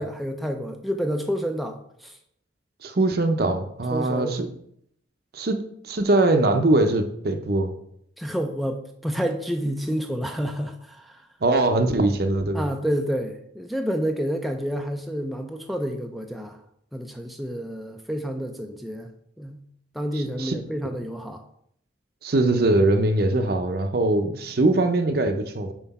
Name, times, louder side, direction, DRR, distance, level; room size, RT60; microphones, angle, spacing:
voice 1, 0.0-2.2 3.9-4.4 8.2-11.2 12.5-16.6 16.9-19.1 19.4-19.6 19.9-21.4, equal, ahead, 3 dB, 0.3 m, -29 dB
voice 2, 2.8-4.5 5.3-5.6 5.8-7.7 11.4-12.7 20.1-20.6 22.2-25.7, right 2 dB, 50° right, 7 dB, 0.6 m, -22 dB
5.7 x 4.5 x 4.1 m, 0.71 s
head